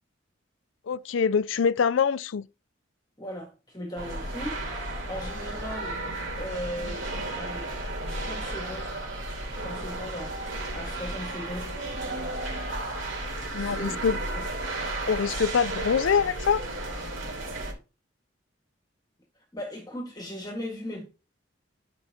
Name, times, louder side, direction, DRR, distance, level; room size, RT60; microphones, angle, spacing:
voice 1, 0.9-2.4 13.5-14.2 15.1-16.6, left 6 dB, 90° left, 0.4 m, -24 dB
voice 2, 3.2-6.0 6.4-7.7 8.1-8.9 9.5-11.8 13.5-14.4 19.5-21.0, equal, 20° left, 1.6 m, -38 dB
sound 1, 4.0-17.7, right 2 dB, 85° right, 3.3 m, -33 dB
12.5 x 5.3 x 2.8 m
head